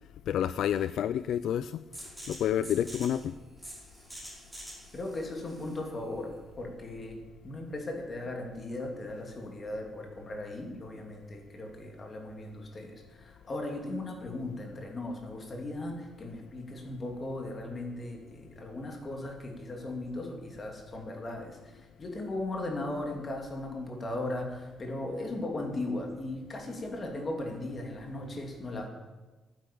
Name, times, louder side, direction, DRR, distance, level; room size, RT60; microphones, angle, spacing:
voice 1, 0.3-1.8 2.3-3.3, left 10 dB, 65° left, 15 dB, 0.4 m, -29 dB
sound 1, 1.9-7.4, equal, ahead, 5.4 m, -47 dB
voice 2, 4.9-28.9, left 2 dB, 25° left, 2 dB, 2.8 m, -37 dB
12.0 x 9.9 x 8.7 m, 1.2 s
cardioid pair, 160°, 0 cm